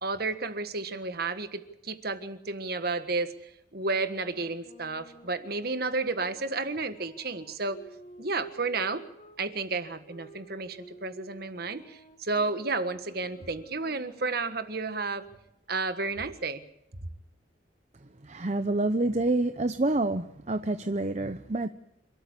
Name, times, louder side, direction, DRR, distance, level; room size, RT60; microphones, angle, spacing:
voice 1, 0.0-7.8 8.2-9.1 9.4-15.2 15.7-16.6, right 3 dB, 50° right, 11 dB, 1.5 m, -32 dB
sound 1, 3.8-9.4 10.1-15.5, right 1 dB, 35° left, 2.7 m, -52 dB
voice 2, 18.3-21.7, right 2 dB, 35° right, 10 dB, 0.7 m, -27 dB
27.5 x 13.0 x 8.3 m, 0.84 s
head